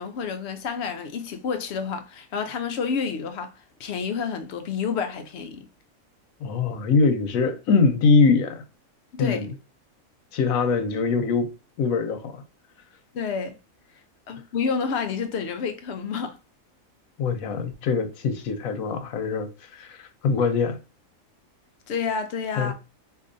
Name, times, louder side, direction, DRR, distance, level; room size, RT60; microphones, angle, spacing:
voice 1, 0.0-3.5 3.8-5.7 9.1-9.5 13.1-13.6 14.3-16.4 21.9-22.7, left 6 dB, 65° left, 0.7 m, -29 dB
voice 2, 6.4-8.6 9.2-9.5 10.3-11.5 11.8-12.4 17.2-20.8 22.6-22.7, left 4 dB, 85° left, 1.1 m, -23 dB
4.6 x 2.4 x 2.5 m
omnidirectional pair, 1.4 m